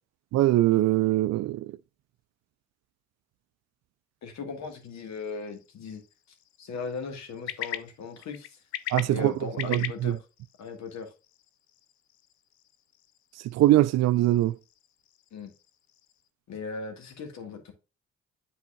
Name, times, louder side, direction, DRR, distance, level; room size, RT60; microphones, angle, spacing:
voice 1, 0.3-1.7 8.9-9.3 9.6-10.2 13.4-14.6, right 15 dB, 55° right, 0.4 m, -22 dB
voice 2, 4.2-6.0 6.6-8.6 9.1-10.2 10.6-11.1 15.3-15.5 16.5-17.7, left 4 dB, 60° left, 1.6 m, -38 dB
sound 1, 4.6-16.3, left 12 dB, 90° left, 0.5 m, -43 dB
9.8 x 4.1 x 2.3 m
hypercardioid pair, 45°, 31 cm